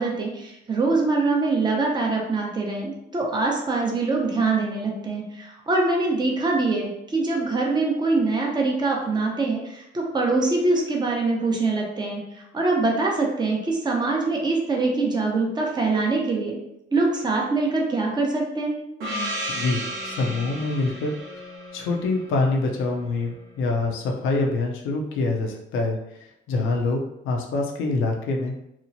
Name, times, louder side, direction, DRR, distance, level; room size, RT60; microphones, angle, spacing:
voice 1, 0.0-16.5 16.9-18.8, right 3 dB, 20° right, -1 dB, 0.7 m, -24 dB
Gong, 19.0-23.3, equal, 90° right, 0.7 m, -34 dB
voice 2, 19.5-21.4 21.7-28.5, left 3 dB, 90° left, 1 dB, 0.5 m, -25 dB
2.9 x 2.1 x 2.6 m, 0.82 s
cardioid pair, 90°, 20 cm